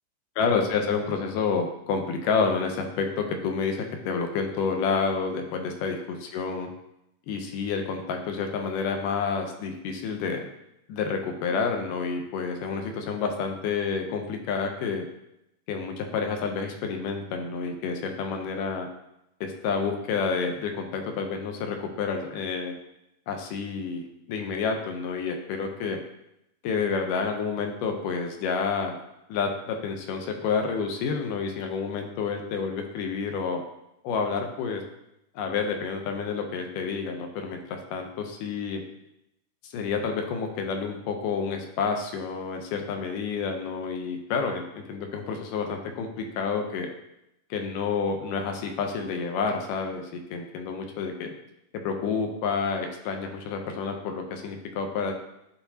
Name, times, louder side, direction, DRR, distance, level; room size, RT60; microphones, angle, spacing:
voice 1, 0.4-6.7 7.3-10.4 10.9-15.1 15.7-18.9 19.4-22.7 23.3-26.0 26.6-29.0 29.3-33.6 34.0-34.8 35.4-38.8 39.6-46.9 47.5-51.3 51.8-55.1, left 5 dB, 75° left, 4 dB, 2.0 m, -29 dB
12.5 x 4.2 x 2.8 m, 0.83 s
omnidirectional pair, 4.5 m